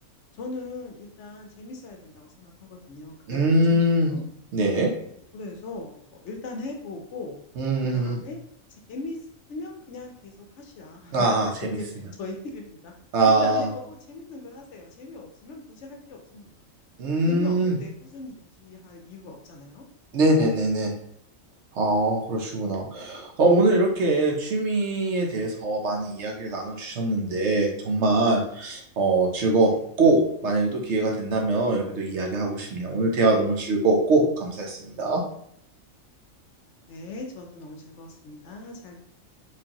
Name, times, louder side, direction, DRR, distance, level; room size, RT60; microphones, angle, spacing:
voice 1, 0.3-4.2 5.3-7.4 7.8-8.4 8.9-9.2 9.5-12.9 13.2-16.6 17.3-19.8 20.1-20.2 29.7-29.8 36.9-38.9, left 3 dB, 65° left, 2 dB, 0.9 m, -39 dB
voice 2, 3.3-4.1 4.5-4.9 7.6-8.2 11.1-11.5 13.1-13.7 17.0-17.7 20.1-20.9 21.7-29.7 30.0-35.2, right 2 dB, 60° right, 1 dB, 0.9 m, -23 dB
4.6 x 2.5 x 2.8 m, 0.70 s
omnidirectional pair, 1.4 m